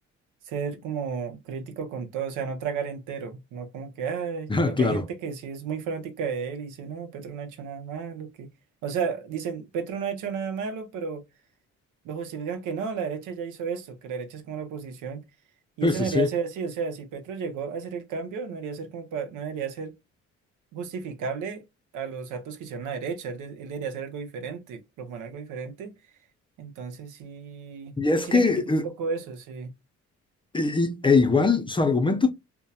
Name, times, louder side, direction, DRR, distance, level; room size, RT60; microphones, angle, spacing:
voice 1, 0.4-8.5 8.8-11.2 12.0-15.2 15.8-19.9 20.7-21.6 21.9-25.9 26.6-27.9 28.3-28.5 28.8-29.7, right 6 dB, 85° right, 0.7 m, -33 dB
voice 2, 4.5-5.0 15.8-16.3 28.0-28.8 30.5-32.3, left 3 dB, 15° left, 0.5 m, -22 dB
2.7 x 2.2 x 2.2 m
cardioid pair, 90°, 30 cm